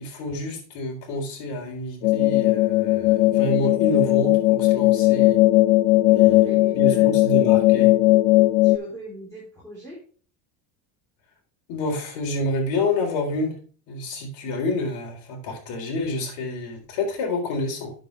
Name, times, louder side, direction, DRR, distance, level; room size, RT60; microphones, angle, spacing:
voice 1, 0.0-5.4 6.1-7.9 11.7-13.6 13.9-17.9, left 2 dB, 65° left, 1 dB, 3.9 m, -28 dB
sound 1, 2.0-8.8, left 18 dB, 80° left, 0.6 m, -18 dB
voice 2, 6.3-7.1 8.6-10.0, equal, 5° left, -6 dB, 3.6 m, -39 dB
9.1 x 6.9 x 3.3 m, 0.41 s
cardioid pair, 135°, 46 cm